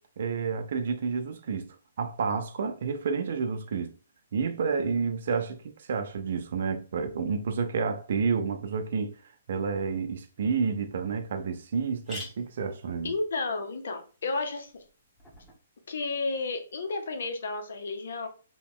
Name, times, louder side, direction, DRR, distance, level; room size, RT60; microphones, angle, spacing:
voice 1, 0.2-3.9 4.3-9.1 9.5-13.1, right 5 dB, 60° right, 0.5 m, -30 dB
sound 1, 10.5-10.6 11.1-11.2 11.4-11.5 11.8-15.6, left 1 dB, 10° left, 1.2 m, -48 dB
voice 2, 13.0-14.8 15.9-18.3, left 3 dB, 70° left, 0.8 m, -32 dB
2.9 x 2.2 x 3.6 m
hypercardioid pair, 140°, 0 cm